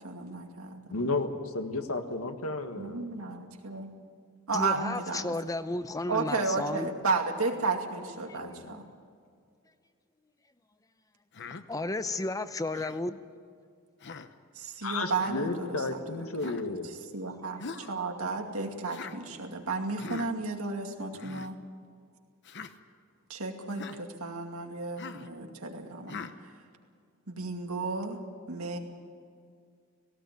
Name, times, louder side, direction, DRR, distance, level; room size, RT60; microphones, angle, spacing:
voice 1, 0.0-0.9 2.7-4.0 4.5-5.3 6.1-8.9 14.5-21.6 23.3-26.5 27.3-28.2 28.5-28.8, right 3 dB, 80° right, 3 dB, 2.4 m, -33 dB
voice 2, 0.9-3.0 8.3-8.7 14.8-16.9, left 3 dB, 80° left, 6 dB, 1.7 m, -33 dB
voice 3, 4.5-6.9 11.5-13.2, left 2 dB, 15° left, 12 dB, 0.6 m, -33 dB
Human voice, 11.3-11.6 12.7-13.0 14.0-14.3 15.1-15.4 16.4-16.7 17.6-17.9 18.9-19.2 20.0-20.3 21.1-21.5 22.4-22.7 23.7-24.0 25.0-25.3 26.1-26.4, left 4 dB, 55° left, 0.9 m, -42 dB
17.5 x 17.5 x 9.2 m, 2.2 s
head